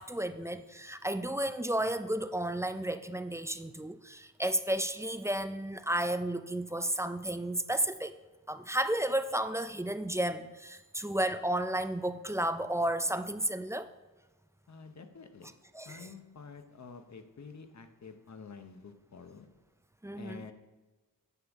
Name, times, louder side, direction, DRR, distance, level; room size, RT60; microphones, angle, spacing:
voice 1, 0.0-8.1 8.5-13.9 15.7-16.1 20.0-20.5, right 1 dB, 10° right, 9 dB, 0.3 m, -32 dB
voice 2, 14.7-15.5 15.9-19.5 20.1-20.5, left 5 dB, 50° left, 7 dB, 0.8 m, -49 dB
9.5 x 5.6 x 3.6 m, 1.2 s
wide cardioid pair, 95°, 36 cm